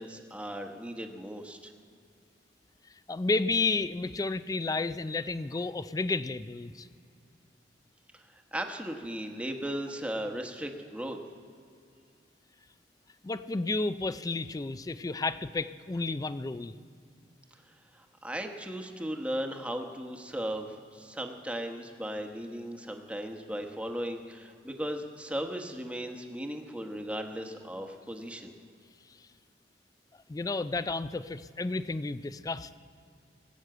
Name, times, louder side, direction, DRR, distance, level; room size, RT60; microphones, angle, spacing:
voice 1, 0.0-1.7 8.1-11.2 17.7-28.5, equal, 10° right, 4 dB, 1.0 m, -37 dB
voice 2, 3.1-6.9 13.2-16.7 30.3-32.7, left 3 dB, 20° left, 14 dB, 0.4 m, -31 dB
19.0 x 8.1 x 7.7 m, 2.4 s
head